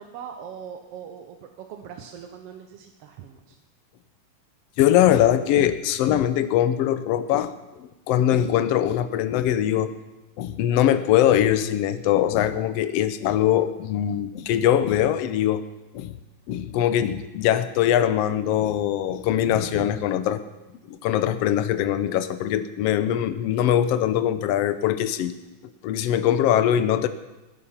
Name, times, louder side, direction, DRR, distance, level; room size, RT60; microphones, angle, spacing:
voice 1, 0.0-3.6 5.9-6.0 19.3-20.0, right 8 dB, 65° right, 5 dB, 1.6 m, -40 dB
voice 2, 4.8-7.5 7.8-9.9 10.4-15.6 15.9-16.1 16.5-20.4 20.9-25.3 25.8-27.1, left 11 dB, 75° left, 12 dB, 1.5 m, -22 dB
20.0 x 10.5 x 5.7 m, 1.0 s
omnidirectional pair, 3.6 m